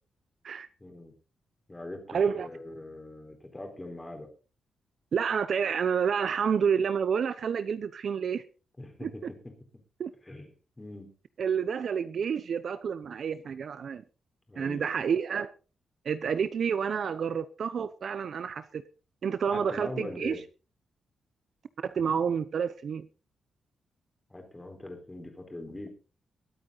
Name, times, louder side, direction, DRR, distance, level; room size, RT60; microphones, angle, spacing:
voice 1, 0.8-1.1 1.7-4.3 8.8-9.2 10.2-10.5 10.8-11.1 14.5-14.9 19.5-20.4 24.3-25.9, left 1 dB, 10° left, 4.0 m, -41 dB
voice 2, 2.1-2.5 5.1-8.4 9.0-9.3 10.0-10.1 11.4-14.0 14.6-15.5 16.0-18.8 19.2-20.4 21.8-23.1, right 7 dB, 50° right, 0.7 m, -29 dB
21.5 x 8.9 x 4.0 m
wide cardioid pair, 160°, 0 cm